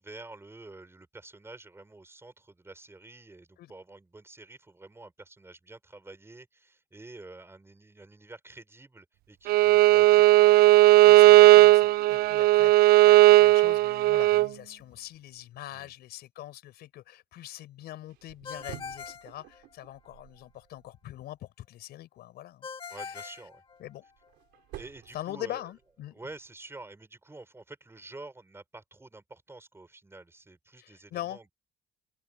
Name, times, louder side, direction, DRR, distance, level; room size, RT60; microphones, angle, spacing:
voice 1, 0.0-10.5 15.7-15.9 22.9-23.6 24.7-25.7 26.1-31.5, right 2 dB, 15° right, 5.8 m, -48 dB
Bowed string instrument, 9.5-14.5, right 19 dB, 65° right, 0.4 m, -17 dB
voice 2, 11.0-23.3 23.8-24.0 25.1-26.2 30.8-31.4, left 14 dB, 75° left, 5.4 m, -43 dB
sound 1, 18.1-21.2 23.4-26.0, right 16 dB, 85° right, 3.8 m, -50 dB
Ringtone, 18.4-20.1 22.6-24.3, left 6 dB, 30° left, 2.4 m, -42 dB
open air
cardioid pair, 110°, 17 cm